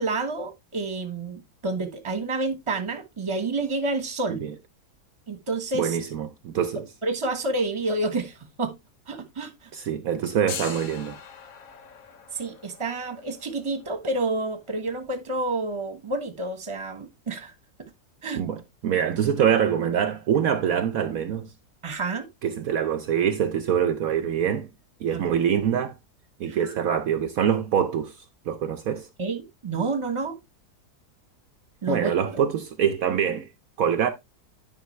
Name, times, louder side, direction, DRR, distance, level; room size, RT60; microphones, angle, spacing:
voice 1, 0.0-4.4 5.3-6.0 7.0-8.7 9.1-9.7 12.3-17.5 18.2-18.4 21.8-22.3 25.1-25.3 26.4-26.7 29.2-30.4 31.8-32.4, right 2 dB, 20° right, 1.2 m, -29 dB
voice 2, 5.7-6.9 9.7-11.2 18.4-21.5 22.4-24.7 25.0-26.0 26.4-29.1 31.9-33.5 33.8-34.1, right 8 dB, 65° right, 1.1 m, -25 dB
sound 1, 7.8-8.7 9.0-9.1 9.9-16.6, left 7 dB, 65° left, 1.4 m, -43 dB
10.0 x 5.2 x 3.2 m
omnidirectional pair, 1.7 m